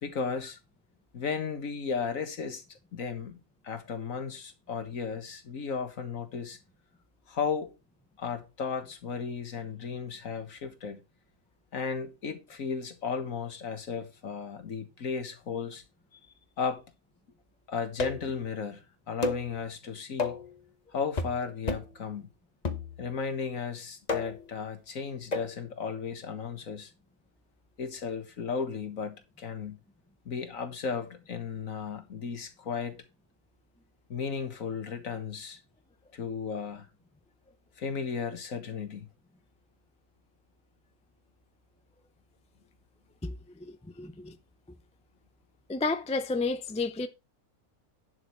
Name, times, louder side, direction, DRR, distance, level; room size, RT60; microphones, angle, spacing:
voice 1, 0.0-0.6 1.1-3.4 3.6-6.6 7.3-7.7 8.2-11.0 11.7-15.8 16.1-16.2 16.6-16.8 17.7-18.8 19.1-20.4 20.9-22.3 23.0-26.9 27.8-29.8 30.3-33.0 34.1-35.6 36.1-36.9 37.8-39.1, left 5 dB, 65° left, 1.9 m, -35 dB
sound 1, 18.0-18.4 19.2-19.5 20.2-20.5 21.2-21.4 21.7-22.0 22.6-23.2 24.1-24.5 25.3-25.5, left 3 dB, 30° left, 1.1 m, -32 dB
voice 2, 43.2-44.4 45.7-47.1, left 3 dB, 10° left, 0.4 m, -32 dB
10.5 x 6.2 x 4.6 m
omnidirectional pair, 1.5 m